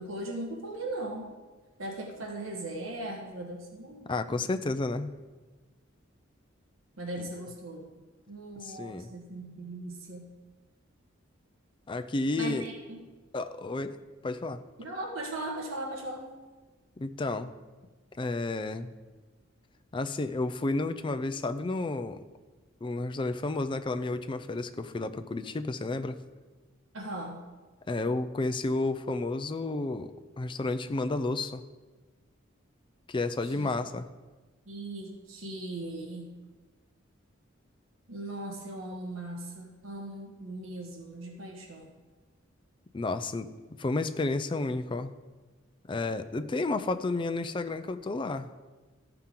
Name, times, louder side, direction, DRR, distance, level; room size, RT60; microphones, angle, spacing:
voice 1, 0.0-1.3 1.8-4.5 7.0-7.8 8.3-10.2 12.4-13.0 14.8-16.3 26.9-27.4 33.4-33.7 34.6-36.3 38.1-41.9, right 1 dB, 90° right, 1 dB, 1.4 m, -38 dB
voice 2, 4.1-5.1 7.2-7.3 8.6-9.1 11.9-12.7 13.3-14.0 14.2-14.6 17.0-17.5 18.2-18.9 19.9-22.2 22.8-26.2 27.9-31.6 33.1-34.1 42.9-43.5 43.8-45.1 45.9-48.5, left 2 dB, 25° left, 10 dB, 0.4 m, -31 dB
14.0 x 5.8 x 3.8 m, 1.3 s
head